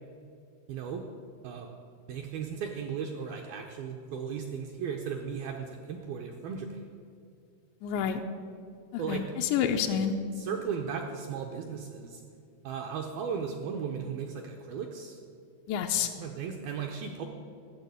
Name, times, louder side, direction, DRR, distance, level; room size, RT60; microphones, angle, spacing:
voice 1, 0.7-1.0 1.4-1.7 2.1-6.8 9.0-9.2 10.3-12.2 12.6-15.2 16.2-17.2, right 6 dB, 80° right, 3 dB, 2.2 m, -36 dB
voice 2, 7.8-8.2 8.9-10.1 15.7-16.1, left 8 dB, 85° left, 4 dB, 2.8 m, -28 dB
13.5 x 7.1 x 9.5 m, 2.3 s
omnidirectional pair, 5.2 m